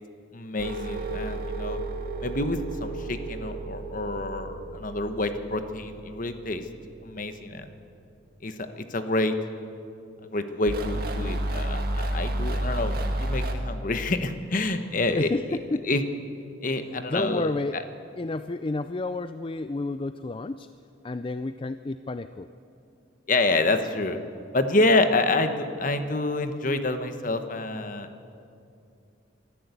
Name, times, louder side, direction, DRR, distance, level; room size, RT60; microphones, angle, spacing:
voice 1, 0.3-1.8 2.2-6.6 7.0-7.6 8.4-9.3 10.3-15.3 15.8-16.0 16.6-17.8 23.3-24.2 24.5-28.3, left 2 dB, 45° left, 8 dB, 1.2 m, -27 dB
sound 1, 0.6-7.0 10.7-13.5, right 1 dB, 50° right, 1.8 m, -31 dB
voice 2, 15.1-15.9 17.1-17.8 18.2-20.7 21.0-22.5, left 2 dB, 30° left, 12 dB, 0.4 m, -30 dB
24.0 x 13.5 x 8.3 m, 2.6 s
head